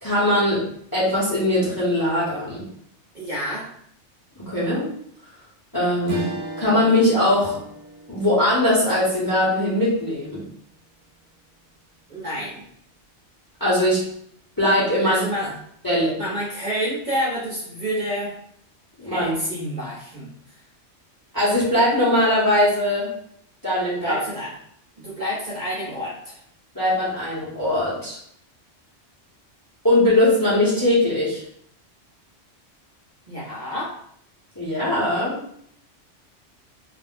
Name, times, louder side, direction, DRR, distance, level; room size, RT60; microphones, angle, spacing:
voice 1, 0.0-0.7 0.9-2.6 4.4-4.9 5.7-7.6 8.1-10.4 13.6-14.0 14.6-15.2 15.8-16.2 19.0-19.4 21.3-23.1 23.6-24.2 26.7-28.2 29.8-31.4 34.6-35.4, left 1 dB, 20° left, -8 dB, 0.7 m, -20 dB
voice 2, 3.1-3.7 12.1-12.6 15.0-15.5 16.2-18.3 19.0-20.3 24.0-24.5 25.0-26.4 33.3-33.9, equal, 45° right, -6 dB, 0.8 m, -29 dB
Strum, 6.1-10.7, right 2 dB, 65° right, 0.9 m, -37 dB
2.5 x 2.1 x 3.5 m, 0.68 s
omnidirectional pair, 1.2 m